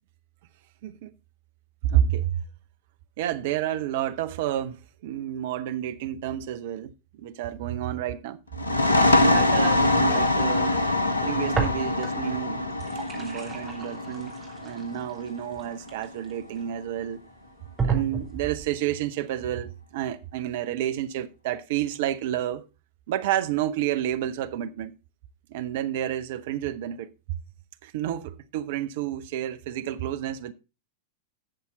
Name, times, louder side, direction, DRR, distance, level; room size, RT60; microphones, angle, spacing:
voice 1, 1.8-2.4 3.2-8.4 9.2-10.8 11.2-12.7 13.2-17.2 17.8-22.7 23.1-24.9 25.5-27.1 27.8-30.5, right 11 dB, 55° right, 0.8 m, -30 dB
sound 1, 8.5-15.9, left 2 dB, 75° left, 0.9 m, -24 dB
sound 2, 11.5-12.3 12.6-16.6 17.2-17.3 17.8-18.7, right 5 dB, 15° right, 3.2 m, -32 dB
11.5 x 7.3 x 4.0 m
figure-of-eight pair, 90°, 0 cm